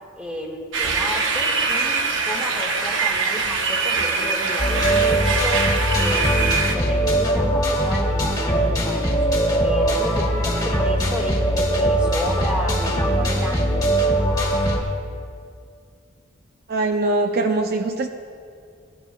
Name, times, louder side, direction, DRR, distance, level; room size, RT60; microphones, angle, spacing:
voice 1, 0.1-9.2 9.6-13.9, equal, 5° right, -1 dB, 1.7 m, -32 dB
sound 1, 0.7-6.7, right 4 dB, 70° right, 0.9 m, -23 dB
sound 2, 4.6-14.8, right 1 dB, 20° left, 2.0 m, -21 dB
voice 2, 16.7-18.1, right 2 dB, 50° right, 6 dB, 0.5 m, -22 dB
19.5 x 11.5 x 2.3 m, 2.3 s
head